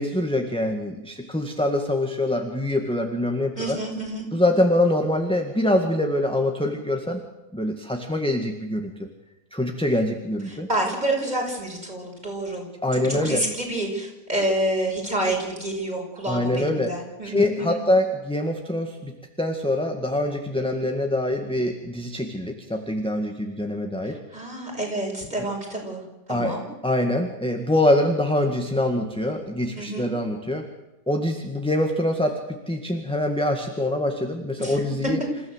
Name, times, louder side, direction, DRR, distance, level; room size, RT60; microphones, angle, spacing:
voice 1, 0.0-3.8 4.3-7.2 7.5-8.9 9.5-10.7 12.8-13.4 16.3-16.9 17.2-19.1 19.4-24.4 26.3-26.6 26.8-30.6 31.1-35.2, left 1 dB, 5° left, 4 dB, 1.7 m, -24 dB
voice 2, 3.5-4.3 10.5-12.6 12.9-17.8 24.0-26.0 26.3-26.6 29.8-30.1 34.6-34.8, right 1 dB, 20° right, 0 dB, 6.9 m, -28 dB
28.0 x 16.0 x 8.0 m, 0.99 s
omnidirectional pair, 2.2 m